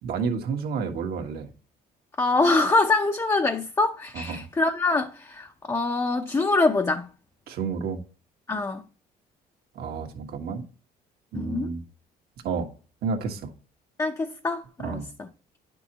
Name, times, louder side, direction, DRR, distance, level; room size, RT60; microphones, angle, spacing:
voice 1, 0.0-1.5 4.1-4.5 7.5-8.0 9.7-10.6 11.3-11.8 12.4-12.7 13.0-13.5 14.8-15.1, right 5 dB, 70° right, 1.5 m, -30 dB
voice 2, 2.2-7.1 8.5-8.8 11.3-11.7 14.0-15.0, left 3 dB, 20° left, 0.6 m, -24 dB
9.8 x 6.1 x 2.9 m
cardioid pair, 110°, 17 cm